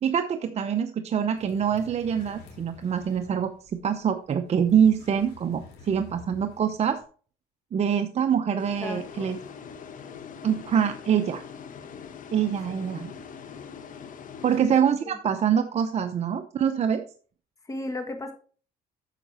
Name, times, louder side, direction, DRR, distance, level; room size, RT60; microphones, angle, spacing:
voice 1, 0.0-7.0 7.7-9.4 10.4-11.4 12.3-13.1 14.4-17.0, right 8 dB, 40° right, 7 dB, 0.7 m, -25 dB
sound 1, 1.3-7.0, left 4 dB, 90° left, 3.1 m, -50 dB
voice 2, 8.5-9.4 14.6-15.2 17.6-18.3, left 2 dB, 20° left, 6 dB, 1.5 m, -36 dB
sound 2, 8.6-15.3, left 7 dB, 50° left, 1.2 m, -43 dB
9.2 x 6.5 x 4.3 m, 0.41 s
cardioid pair, 110°, 17 cm